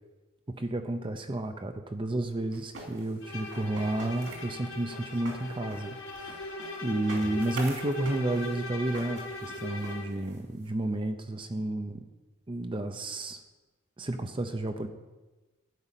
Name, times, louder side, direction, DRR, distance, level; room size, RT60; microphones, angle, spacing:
voice 1, 0.5-6.5 6.8-12.0 12.5-13.4 14.0-14.9, right 1 dB, 25° right, 7 dB, 0.6 m, -31 dB
sound 1, 2.5-10.7, right 1 dB, 70° right, 2.8 m, -45 dB
Bowed string instrument, 3.2-10.2, left 1 dB, 65° left, 2.3 m, -40 dB
12.5 x 5.4 x 9.1 m, 1.2 s
head